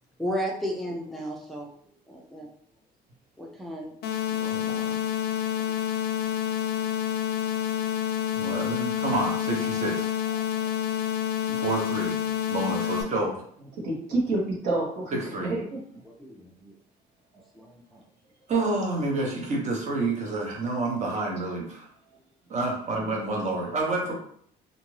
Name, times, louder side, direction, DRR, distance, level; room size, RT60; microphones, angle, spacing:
voice 1, 0.2-1.7 2.1-2.5 3.4-3.9 4.3-5.0 5.3-5.4 10.3-10.7 16.0-16.7 17.5-18.0, equal, ahead, -1 dB, 0.4 m, -35 dB
sound 1, 4.0-13.0, left 10 dB, 70° left, 0.4 m, -28 dB
voice 2, 4.4-4.9 8.3-10.1 11.5-12.2 12.5-13.4 15.1-15.6 18.5-21.9 22.5-24.1, right 2 dB, 45° right, 0 dB, 0.9 m, -29 dB
voice 3, 13.8-15.8, right 2 dB, 80° right, -3 dB, 1.2 m, -28 dB
2.6 x 2.4 x 3.2 m, 0.62 s
cardioid pair, 110°, 17 cm